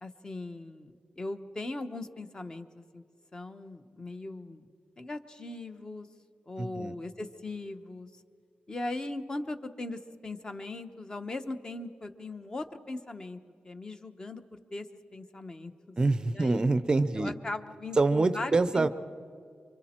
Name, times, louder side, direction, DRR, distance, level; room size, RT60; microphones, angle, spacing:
voice 1, 0.0-3.0 3.3-4.7 5.0-6.1 6.5-8.1 8.7-14.9 15.1-16.0 16.3-16.7 17.1-18.9, left 2 dB, 20° left, 8 dB, 0.9 m, -39 dB
voice 2, 6.6-7.0 16.0-17.3 18.0-18.9, right 3 dB, 25° right, 12 dB, 0.6 m, -25 dB
28.0 x 25.0 x 4.4 m, 2.2 s
wide cardioid pair, 180°, 3 cm